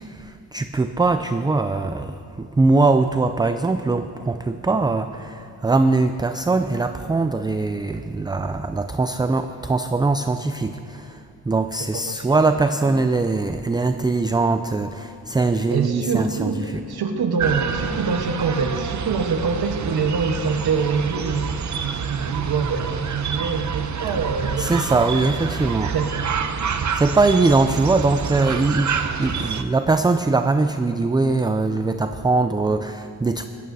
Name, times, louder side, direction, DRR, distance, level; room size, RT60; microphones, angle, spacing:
voice 1, 0.0-11.2 11.5-16.5 24.6-25.9 26.9-33.4, right 3 dB, 10° right, 8 dB, 0.3 m, -21 dB
voice 2, 11.9-12.4 12.8-12.9 15.7-21.5 21.8-26.3 26.8-27.0 28.3-28.8, right 5 dB, 70° right, 5 dB, 1.3 m, -25 dB
sound 1, 17.4-29.6, right 6 dB, 45° right, 0.7 m, -28 dB
17.0 x 15.0 x 2.7 m, 2.5 s
cardioid pair, 70°, 39 cm